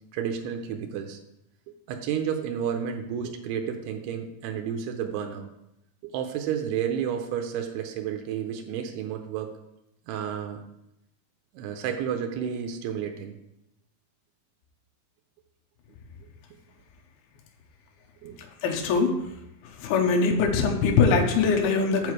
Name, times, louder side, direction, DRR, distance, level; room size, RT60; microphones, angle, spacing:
voice 1, 0.1-1.2 1.9-5.5 6.0-9.5 10.1-10.6 11.5-13.3 18.2-18.4, right 8 dB, 85° right, 4 dB, 2.8 m, -31 dB
voice 2, 18.6-19.1 19.8-22.1, left 5 dB, 75° left, 1 dB, 3.0 m, -22 dB
7.6 x 7.0 x 4.8 m, 0.84 s
omnidirectional pair, 4.7 m